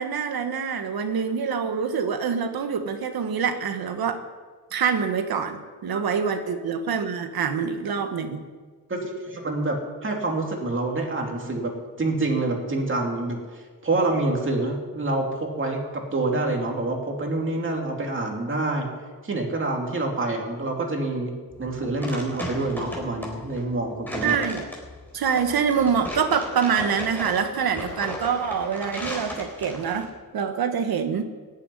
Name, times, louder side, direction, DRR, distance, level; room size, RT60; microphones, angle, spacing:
voice 1, 0.0-4.2 4.7-8.5 24.2-24.6 25.1-31.2, right 6 dB, 70° right, 7 dB, 1.4 m, -25 dB
voice 2, 8.9-11.7 12.0-18.9 19.2-24.4, right 2 dB, 30° right, 1 dB, 2.9 m, -27 dB
sound 1, 21.5-30.1, left 1 dB, 5° left, 3.8 m, -36 dB
17.0 x 7.4 x 9.8 m, 1.5 s
wide cardioid pair, 145°, 37 cm